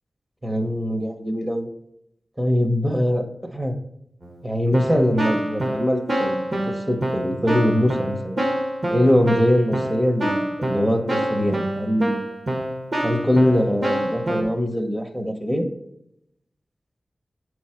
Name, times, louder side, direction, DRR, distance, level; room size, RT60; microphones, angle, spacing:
voice 1, 0.4-1.7 2.4-3.7 4.4-8.4 8.9-12.2 13.0-15.7, equal, 15° right, 5 dB, 1.0 m, -22 dB
Keyboard (musical), 4.2-4.4 4.7-14.4, right 1 dB, 60° right, 1.9 m, -26 dB
7.1 x 4.7 x 4.4 m, 0.79 s
wide cardioid pair, 70°, 0 cm